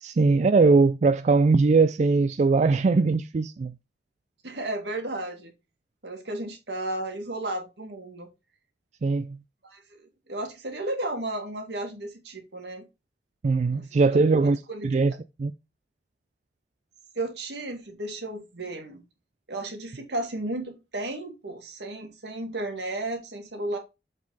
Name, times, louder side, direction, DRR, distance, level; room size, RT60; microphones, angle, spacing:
voice 1, 0.0-3.7 9.0-9.4 13.4-15.5, right 4 dB, 40° right, 0.3 m, -21 dB
voice 2, 4.4-5.5 6.0-8.3 9.6-12.8 13.7-15.2 17.2-19.0 19.5-23.8, right 2 dB, 75° right, 2.0 m, -34 dB
7.3 x 4.1 x 4.0 m
head